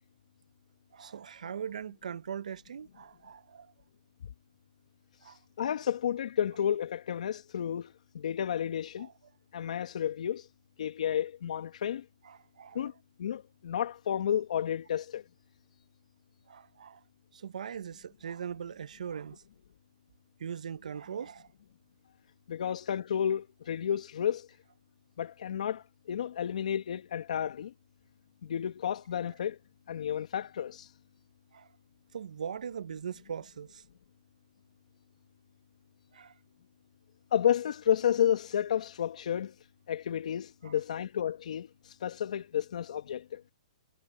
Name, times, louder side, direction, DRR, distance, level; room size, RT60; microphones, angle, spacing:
voice 1, 0.9-3.7 5.2-5.4 9.0-9.1 12.2-12.9 16.5-17.0 17.3-19.4 20.4-21.5 31.5-31.7 32.1-33.8 36.1-36.3 40.6-40.7, right 7 dB, 80° right, 0.9 m, -40 dB
voice 2, 5.2-9.1 9.5-10.5 10.8-12.0 12.7-12.9 13.2-15.2 22.5-24.5 25.2-27.7 28.4-29.6 29.9-30.9 37.3-39.5 39.9-43.4, left 9 dB, 70° left, 1.5 m, -31 dB
hypercardioid pair, 145°, 4 cm